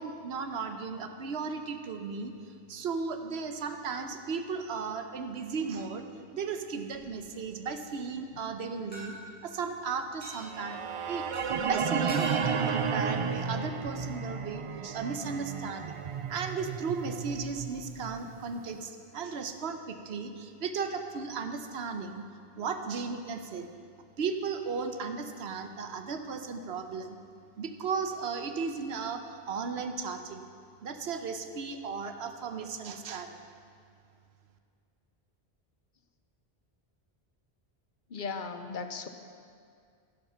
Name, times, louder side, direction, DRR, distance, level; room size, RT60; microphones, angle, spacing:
voice 1, 0.0-2.3 2.7-6.1 6.3-11.3 11.6-15.9 16.3-22.2 22.6-23.7 24.2-27.2 27.6-30.5 30.8-33.4, right 5 dB, 90° right, 7 dB, 1.1 m, -35 dB
sound 1, 7.1-7.6 8.9-9.0 10.2-10.4 11.3-11.4 12.1-12.4, right 1 dB, 10° left, 3.3 m, -42 dB
sound 2, 10.5-18.6, right 6 dB, 50° right, 0.3 m, -33 dB
voice 2, 38.1-39.1, left 4 dB, 55° left, 8 dB, 0.8 m, -36 dB
11.5 x 10.5 x 5.8 m, 2.2 s
omnidirectional pair, 1.0 m